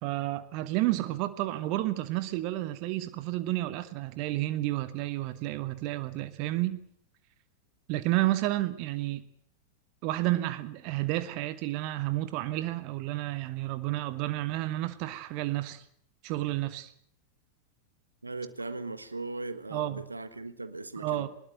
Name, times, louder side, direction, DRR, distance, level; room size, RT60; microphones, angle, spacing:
voice 1, 0.0-6.8 7.9-9.2 10.0-15.8 16.2-16.9 19.7-20.0 21.0-21.3, right 16 dB, 45° right, 1.3 m, -31 dB
voice 2, 18.2-21.3, right 3 dB, 80° right, 1.5 m, -38 dB
20.5 x 20.5 x 8.0 m
figure-of-eight pair, 90°, 0 cm